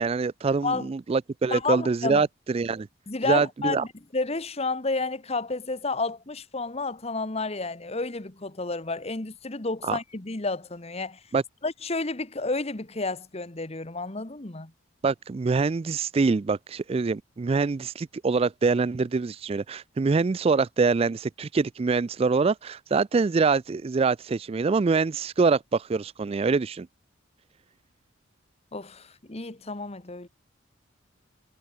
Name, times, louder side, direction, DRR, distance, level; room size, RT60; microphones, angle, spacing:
voice 1, 0.0-2.9 3.3-3.8 9.8-10.0 11.3-11.4 15.0-26.9, right 4 dB, 30° right, 0.3 m, -25 dB
voice 2, 1.5-2.2 3.1-11.2 11.6-14.7 28.7-30.3, left 3 dB, 30° left, 1.3 m, -31 dB
head